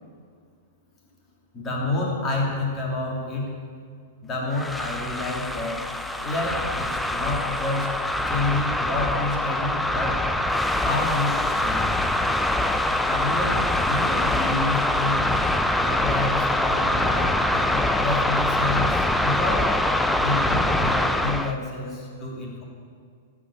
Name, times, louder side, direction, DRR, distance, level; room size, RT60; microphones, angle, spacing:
voice 1, 1.5-3.6 4.2-5.8 6.2-8.0 8.3-10.2 10.8-12.0 13.1-13.6 13.9-15.3 15.8-19.7 20.2-22.6, left 2 dB, 25° left, -3 dB, 3.0 m, -29 dB
sound 1, 4.5-21.5, left 1 dB, 5° left, 0.5 m, -24 dB
12.0 x 6.2 x 8.3 m, 2.1 s
hypercardioid pair, 135°, 0 cm